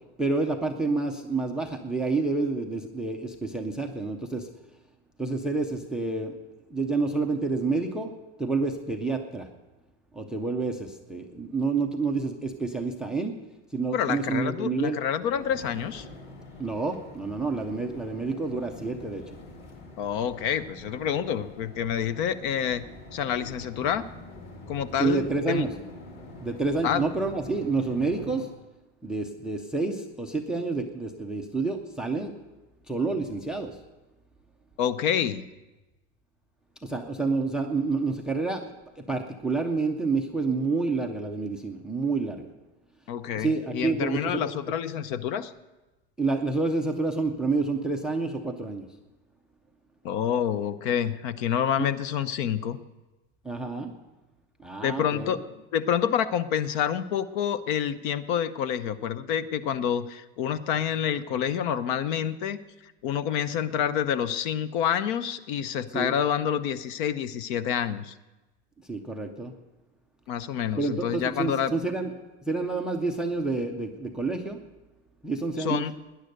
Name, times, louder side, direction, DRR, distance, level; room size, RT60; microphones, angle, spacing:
voice 1, 0.2-4.5 5.2-6.3 6.7-8.1 8.4-9.5 10.1-13.4 13.7-15.0 16.6-19.2 25.0-25.7 26.4-28.5 29.0-32.3 32.9-33.8 36.8-42.5 43.4-44.5 46.2-48.9 51.8-51.9 53.4-53.9 54.6-55.4 65.9-66.1 68.9-69.6 70.8-72.1 72.5-74.6 75.2-75.8, right 3 dB, ahead, 6 dB, 0.4 m, -28 dB
voice 2, 13.9-16.1 20.0-22.8 23.1-24.0 24.7-25.6 26.8-27.0 34.8-35.4 43.1-45.5 50.0-52.8 54.8-55.4 55.7-68.1 70.3-71.7 75.6-75.9, left 9 dB, 50° left, 15 dB, 0.8 m, -28 dB
sound 1, 15.2-28.5, left 1 dB, 30° left, 2.5 m, -45 dB
18.5 x 10.5 x 6.5 m, 1.1 s
supercardioid pair, 175°, 32 cm